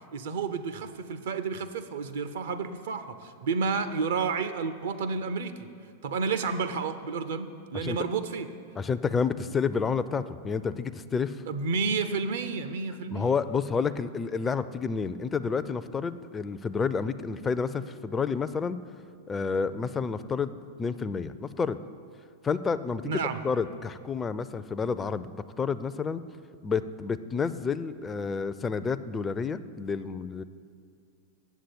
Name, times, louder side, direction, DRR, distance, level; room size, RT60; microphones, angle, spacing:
voice 1, 0.1-5.7 6.0-8.5 11.5-13.3 23.0-23.4, right 5 dB, 65° right, 11 dB, 0.6 m, -31 dB
voice 2, 8.8-11.4 13.1-18.8 19.3-21.8 22.4-25.3 25.6-26.2 26.6-30.4, left 5 dB, 20° left, 13 dB, 0.4 m, -30 dB
8.3 x 7.5 x 8.5 m, 2.2 s
figure-of-eight pair, 90°, 0 cm